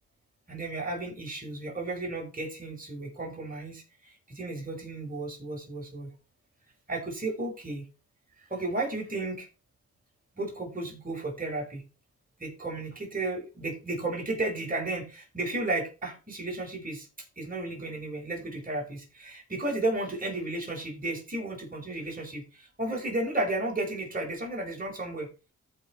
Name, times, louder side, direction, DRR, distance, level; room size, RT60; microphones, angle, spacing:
voice 1, 0.5-6.1 6.9-7.8 8.5-9.5 10.4-11.8 12.4-17.1 17.4-25.3, right 2 dB, 25° right, -1 dB, 5.1 m, -33 dB
14.0 x 4.9 x 4.2 m, 0.32 s
cardioid pair, 70°, 31 cm